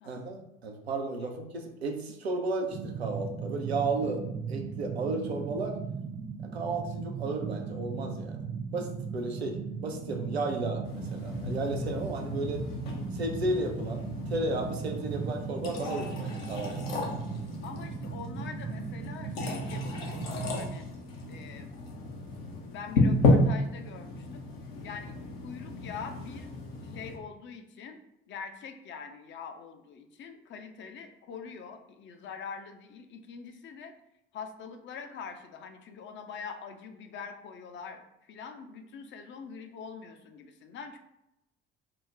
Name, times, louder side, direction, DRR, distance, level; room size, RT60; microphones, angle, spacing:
voice 1, 0.0-5.8 6.4-12.6 13.1-16.9, right 3 dB, 85° right, 3 dB, 0.5 m, -34 dB
sound 1, 2.7-20.8, right 5 dB, 20° right, 0.4 m, -37 dB
sound 2, 10.8-27.2, left 2 dB, 70° left, 0.7 m, -32 dB
voice 2, 17.6-20.9 21.3-21.7 22.7-24.4 24.8-25.2 25.4-26.5 26.8-28.0 28.3-33.9 34.3-41.0, left 6 dB, 40° left, 6 dB, 0.5 m, -44 dB
4.7 x 2.1 x 2.4 m, 0.85 s
figure-of-eight pair, 50°, 31 cm